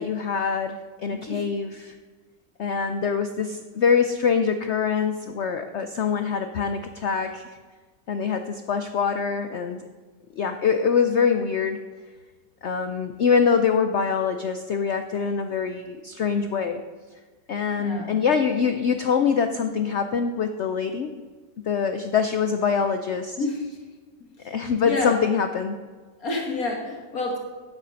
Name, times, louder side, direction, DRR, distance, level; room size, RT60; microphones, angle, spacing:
voice 1, 0.0-2.0 2.6-7.6 8.1-9.8 10.4-11.8 12.6-16.8 17.5-21.1 21.7-23.4 24.4-25.8, left 6 dB, 85° left, 8 dB, 0.6 m, -24 dB
voice 2, 1.1-1.5 17.8-18.2 23.4-23.8 24.4-25.2 26.2-27.4, left 2 dB, 55° left, 1 dB, 1.8 m, -30 dB
9.3 x 8.2 x 5.7 m, 1.4 s
omnidirectional pair, 1.9 m